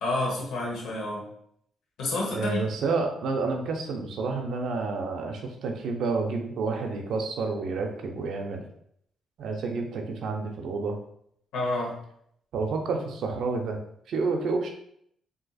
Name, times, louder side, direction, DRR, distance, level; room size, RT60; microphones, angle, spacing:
voice 1, 0.0-1.2 2.0-2.6 11.5-12.0, left 2 dB, 90° left, -2 dB, 0.9 m, -29 dB
voice 2, 2.3-8.6 9.4-11.0 12.5-13.8 14.1-14.7, right 4 dB, 70° right, 3 dB, 0.5 m, -29 dB
3.9 x 2.7 x 2.3 m, 0.70 s
cardioid pair, 90°, 0 cm